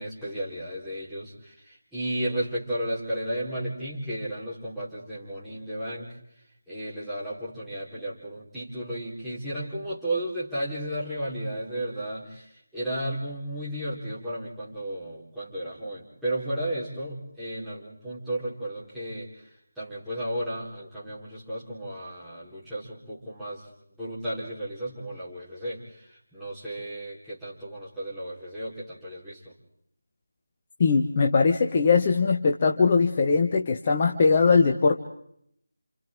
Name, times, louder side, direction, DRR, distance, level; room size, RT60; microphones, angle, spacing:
voice 1, 0.0-6.1 6.7-19.3 19.8-23.6 24.0-29.5, right 1 dB, ahead, -13 dB, 4.3 m, -34 dB
voice 2, 30.8-35.0, left 4 dB, 30° left, 3 dB, 1.1 m, -21 dB
30.0 x 28.5 x 3.8 m, 0.71 s
figure-of-eight pair, 160°, 0 cm